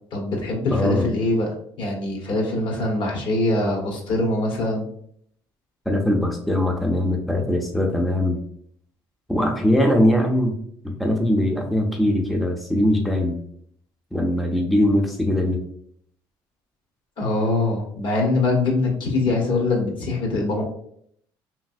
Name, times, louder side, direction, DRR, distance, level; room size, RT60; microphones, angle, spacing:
voice 1, 0.1-4.8 17.2-20.6, left 2 dB, 60° left, 0 dB, 1.1 m, -23 dB
voice 2, 0.7-1.1 5.9-8.4 9.3-10.5 10.8-13.4 14.1-15.6, left 1 dB, ahead, 1 dB, 0.4 m, -21 dB
3.1 x 2.6 x 2.5 m, 0.67 s
supercardioid pair, 95°, 9 cm